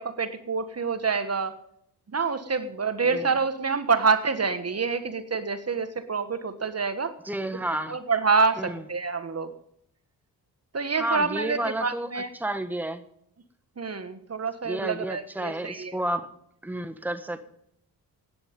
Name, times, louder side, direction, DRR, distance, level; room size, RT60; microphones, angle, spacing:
voice 1, 0.0-1.5 2.1-7.1 7.9-9.5 10.7-12.3 13.8-15.9, right 4 dB, 40° right, 10 dB, 1.5 m, -27 dB
voice 2, 7.2-8.0 8.6-8.8 11.0-13.0 14.6-16.3 16.6-17.4, right 1 dB, 5° right, 9 dB, 1.4 m, -31 dB
16.0 x 10.5 x 5.4 m, 0.71 s
supercardioid pair, 50°, 40 cm